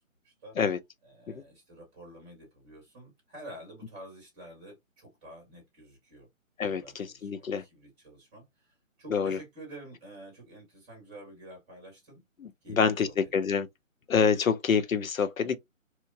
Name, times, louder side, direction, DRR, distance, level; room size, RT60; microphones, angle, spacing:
voice 1, 0.2-0.6 1.0-6.3 6.6-12.2 12.6-13.3, right 1 dB, 10° right, 0.9 m, -49 dB
voice 2, 6.6-7.6 9.1-9.4 12.4-13.7 14.1-15.6, left 6 dB, 80° left, 0.6 m, -27 dB
2.9 x 2.2 x 2.4 m
figure-of-eight pair, 145°, 40 cm